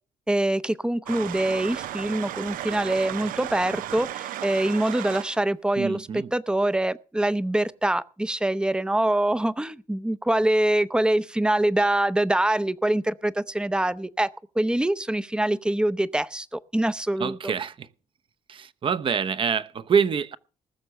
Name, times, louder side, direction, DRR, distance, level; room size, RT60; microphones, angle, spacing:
voice 1, 0.3-14.3 14.6-17.4, right 1 dB, 5° right, 0.6 m, -24 dB
sound 1, 1.1-5.4, right 13 dB, 85° right, 0.6 m, -34 dB
voice 2, 5.8-6.3 17.2-17.9 18.5-20.4, right 6 dB, 40° right, 0.8 m, -26 dB
19.5 x 6.8 x 6.5 m
cardioid pair, 140°, 14 cm